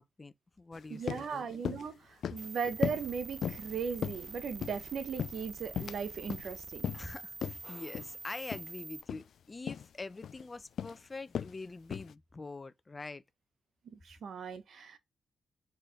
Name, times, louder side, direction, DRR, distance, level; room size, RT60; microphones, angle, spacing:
voice 1, 0.0-1.5 6.9-13.2, left 3 dB, 25° left, 0.8 m, -45 dB
sound 1, 0.7-0.8 1.1-1.3 1.6-1.9 2.2-2.5 2.8-3.1 3.4-3.7 4.0-4.8 5.2-6.0 6.3-6.5 6.8-7.1 7.4-7.6 7.9-8.1 8.5-8.7 9.0-9.2 9.7-9.9 10.2-10.5 10.8-11.0 11.3-11.6 11.9-12.1, left 8 dB, 75° left, 0.3 m, -36 dB
voice 2, 0.9-6.9 13.9-15.0, right 6 dB, 70° right, 1.2 m, -38 dB
sound 2, 2.4-9.0, right 4 dB, 35° right, 0.6 m, -46 dB
4.9 x 3.9 x 5.0 m
cardioid pair, 105°, 0 cm